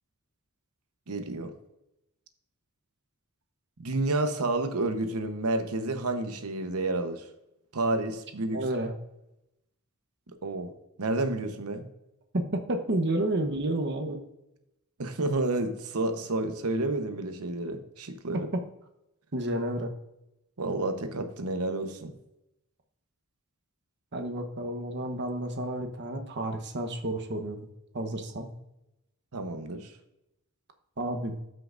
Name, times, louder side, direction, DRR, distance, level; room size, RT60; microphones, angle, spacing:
voice 1, 1.1-1.5 3.8-7.3 7.7-8.6 10.4-10.7 11.0-11.9 15.0-18.5 20.6-22.1 29.3-29.9, right 2 dB, 80° right, 7 dB, 0.9 m, -30 dB
voice 2, 8.5-8.9 12.3-14.2 19.3-19.9 24.1-27.6 27.9-28.5 31.0-31.3, right 1 dB, 50° right, 5 dB, 1.0 m, -30 dB
13.0 x 5.7 x 2.5 m, 0.89 s
head